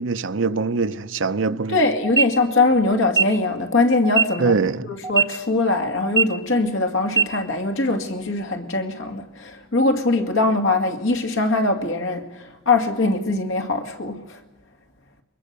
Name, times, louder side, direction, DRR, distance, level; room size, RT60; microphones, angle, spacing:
voice 1, 0.0-1.8 4.4-4.9, right 4 dB, 70° right, 0.7 m, -23 dB
voice 2, 1.7-4.5 5.1-14.4, left 2 dB, 75° left, 2.2 m, -22 dB
sound 1, 2.0-2.2 3.0-3.2 4.0-4.2 5.0-5.2 6.0-6.2 7.0-7.2, right 6 dB, 15° right, 0.8 m, -18 dB
23.0 x 21.0 x 6.8 m
head